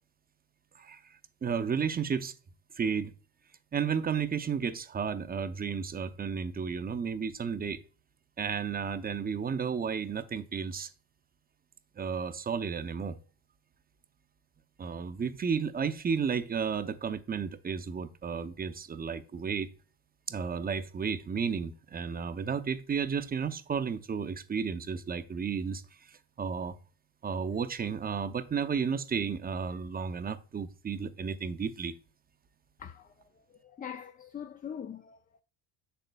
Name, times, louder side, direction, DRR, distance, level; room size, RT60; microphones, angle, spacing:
voice 1, 1.4-2.3 2.8-3.1 3.7-7.8 8.4-10.9 12.0-13.2 14.8-19.7 20.3-25.8 26.1-26.8 27.2-31.9, right 6 dB, 25° right, 0.6 m, -33 dB
voice 2, 32.8-35.4, left 8 dB, 20° left, 0.4 m, -43 dB
7.3 x 6.8 x 2.3 m
supercardioid pair, 90°, 40 cm